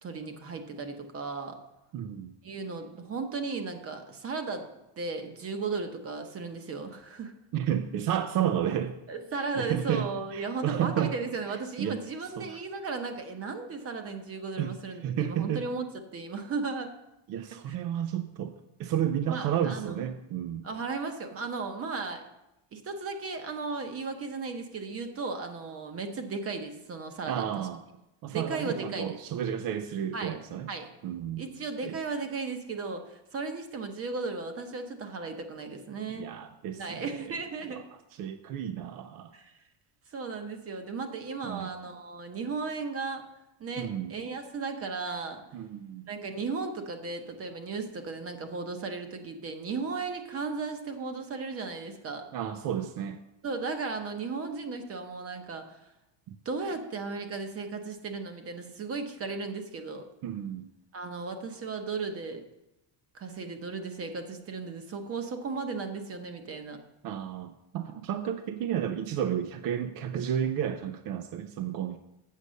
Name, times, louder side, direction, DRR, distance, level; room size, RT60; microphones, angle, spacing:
voice 1, 0.0-1.6 2.4-4.7 5.0-7.3 9.1-15.9 16.1-17.0 17.6-17.8 19.3-20.0 20.6-22.2 22.7-27.7 28.3-29.2 30.1-30.4 30.7-30.9 31.4-36.3 36.8-37.8 39.3-39.6 40.1-43.2 43.6-45.4 46.1-52.3 53.4-55.8 56.4-60.1 60.9-62.4 63.1-66.8, right 4 dB, 30° right, 6 dB, 0.8 m, -35 dB
voice 2, 1.9-2.4 7.5-8.9 9.5-10.1 10.3-11.1 11.5-12.0 12.4-12.5 14.6-14.7 15.0-15.6 17.3-18.5 18.8-20.6 27.3-27.8 28.2-30.7 31.0-31.4 31.8-32.0 36.1-37.3 37.7-37.8 38.1-39.3 41.4-41.7 43.8-44.1 45.5-46.1 52.3-53.2 56.3-56.4 60.2-60.7 67.0-72.0, right 10 dB, 45° right, 8 dB, 0.5 m, -32 dB
8.3 x 6.6 x 6.3 m, 0.90 s
cardioid pair, 180°, 50 cm